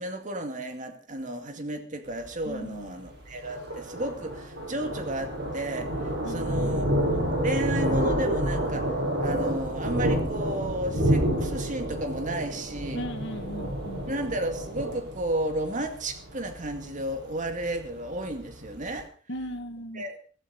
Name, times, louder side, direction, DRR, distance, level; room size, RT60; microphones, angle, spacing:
voice 1, 0.0-13.1 14.1-19.1 19.9-20.2, right 1 dB, 40° right, 6 dB, 2.2 m, -33 dB
Thunder, 2.1-19.0, right 1 dB, 60° right, 7.9 m, -29 dB
voice 2, 2.5-2.9 6.2-6.9 12.9-14.1 19.3-20.0, equal, 60° left, 6 dB, 2.1 m, -37 dB
16.0 x 14.5 x 4.1 m, 0.43 s
head